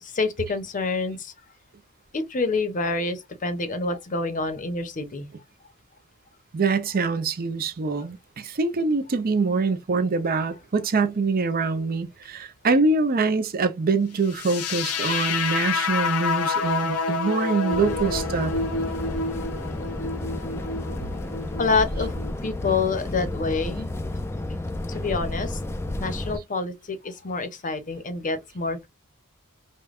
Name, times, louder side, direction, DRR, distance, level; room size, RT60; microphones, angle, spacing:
voice 1, 0.0-1.3 2.1-5.3 21.6-22.1 22.4-23.9 24.9-25.6 26.0-28.9, left 3 dB, 40° left, 0.7 m, -27 dB
voice 2, 6.5-18.5, right 4 dB, 45° right, 0.5 m, -24 dB
sound 1, 14.3-22.3, left 4 dB, 85° left, 0.7 m, -28 dB
sound 2, 17.7-26.4, left 1 dB, 10° left, 0.3 m, -32 dB
5.1 x 2.2 x 2.4 m
head